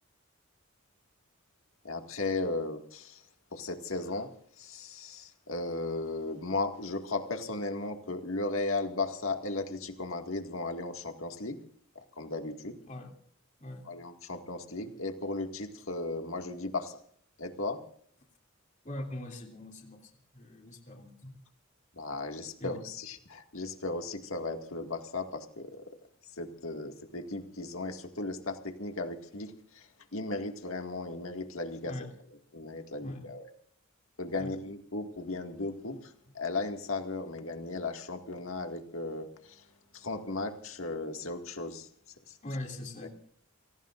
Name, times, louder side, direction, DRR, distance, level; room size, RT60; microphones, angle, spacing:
voice 1, 1.8-3.2 3.5-4.3 4.6-11.6 12.0-12.8 13.9-17.0 17.4-17.8 22.0-25.8 26.4-31.9 32.5-33.5 34.2-39.7 39.9-41.9 42.3-42.4, left 2 dB, 80° left, 5 dB, 2.1 m, -36 dB
voice 2, 12.8-13.2 13.6-13.9 18.8-21.4 22.6-22.9 31.8-32.1 33.0-33.3 34.4-34.6 42.4-43.1, left 1 dB, 40° left, 2 dB, 3.0 m, -42 dB
29.5 x 18.5 x 2.6 m, 0.62 s
head